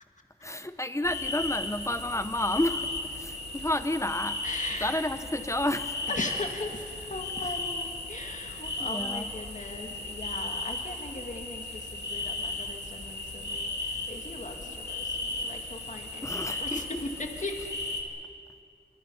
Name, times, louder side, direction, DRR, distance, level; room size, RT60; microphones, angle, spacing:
voice 1, 0.4-4.4 4.8-6.1 8.8-9.3 16.2-16.8, left 1 dB, 15° left, 10 dB, 1.0 m, -31 dB
sound 1, 1.0-18.0, left 2 dB, 75° left, 2.7 m, -36 dB
voice 2, 4.4-5.0 6.1-17.1 17.4-17.6, left 2 dB, 45° left, 3 dB, 2.2 m, -39 dB
26.5 x 24.5 x 5.6 m, 2.4 s
wide cardioid pair, 65°, 17 cm